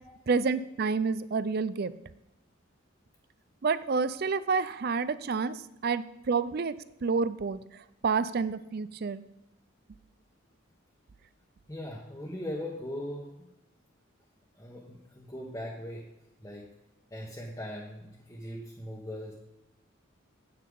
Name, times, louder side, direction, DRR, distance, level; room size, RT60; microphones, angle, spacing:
voice 1, 0.3-1.9 3.6-6.8 7.0-7.6 8.0-9.2, right 4 dB, 50° right, 15 dB, 0.4 m, -29 dB
voice 2, 11.7-13.5 14.6-16.1 16.4-16.7 17.1-19.3, left 1 dB, 15° left, -3 dB, 1.2 m, -40 dB
9.4 x 8.7 x 3.9 m, 0.90 s
head